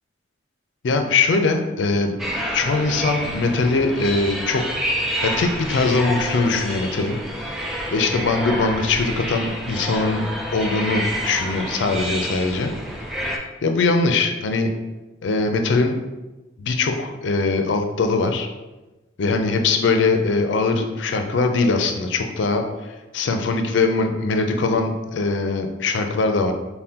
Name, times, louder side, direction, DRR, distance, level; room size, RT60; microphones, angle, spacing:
voice 1, 0.8-2.1 2.5-4.6 5.2-7.2 7.6-10.2 10.5-12.7 13.6-14.7 15.2-15.9 16.6-18.5 19.2-26.5, left 3 dB, 65° left, 5 dB, 0.4 m, -21 dB
sound 1, 2.2-13.4, equal, ahead, 0.3 m, -28 dB
5.5 x 2.1 x 2.8 m, 1.1 s
head